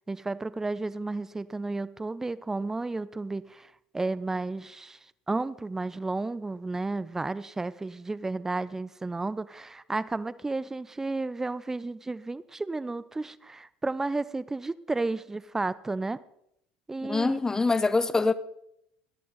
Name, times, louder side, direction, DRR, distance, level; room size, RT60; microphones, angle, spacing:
voice 1, 0.1-5.0 5.3-16.2 16.9-17.4, right 3 dB, 15° right, 0.6 m, -32 dB
voice 2, 17.0-18.3, left 3 dB, 20° left, 0.8 m, -24 dB
14.5 x 11.0 x 4.0 m
hypercardioid pair, 70°, 3 cm